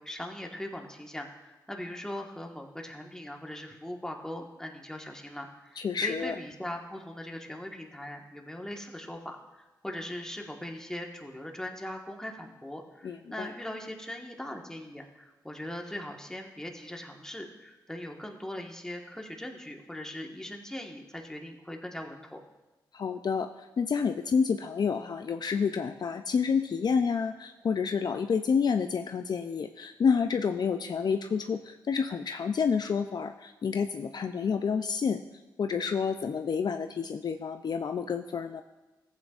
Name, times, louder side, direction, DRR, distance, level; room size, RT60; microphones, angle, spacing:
voice 1, 0.0-22.4, left 1 dB, 5° left, 2 dB, 1.5 m, -40 dB
voice 2, 5.8-6.3 13.0-13.5 22.9-35.2 35.6-38.6, left 6 dB, 55° left, 7 dB, 0.5 m, -29 dB
14.5 x 8.3 x 2.5 m, 1.1 s
cardioid pair, 50°, 8 cm